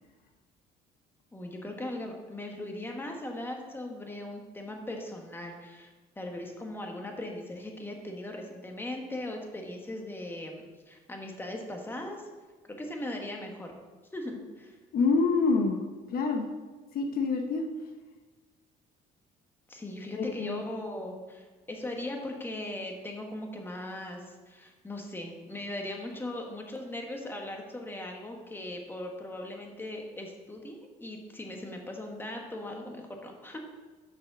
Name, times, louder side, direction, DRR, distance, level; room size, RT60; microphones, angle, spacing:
voice 1, 1.3-12.3 12.7-13.7 14.1-14.8 19.7-33.6, left 1 dB, 10° left, 2 dB, 1.5 m, -39 dB
voice 2, 14.9-15.8 16.1-16.5 16.9-17.6 20.2-20.6, left 4 dB, 60° left, 4 dB, 1.0 m, -26 dB
7.3 x 6.2 x 6.2 m, 1.3 s
cardioid pair, 110°, 17 cm